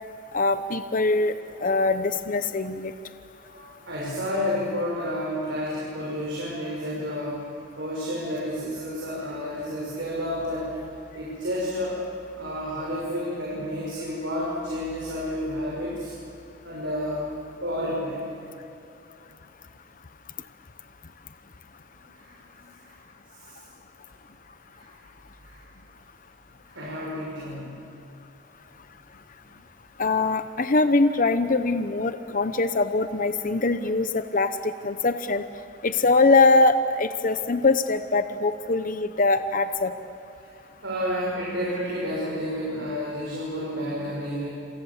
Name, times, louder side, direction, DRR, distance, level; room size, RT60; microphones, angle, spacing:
voice 1, 0.3-1.3 1.6-2.9 30.0-35.4 35.8-39.9, left 3 dB, 45° left, 10 dB, 0.8 m, -22 dB
voice 2, 3.4-7.4 7.8-10.8 11.1-12.0 12.4-16.1 16.6-17.3 17.6-18.2 22.1-22.3 22.8-23.0 23.4-23.7 24.7-24.9 25.4-25.6 26.6-27.8 40.4-40.5 40.8-44.5, equal, 65° right, -5 dB, 6.1 m, -30 dB
28.0 x 27.5 x 7.3 m, 2.7 s
head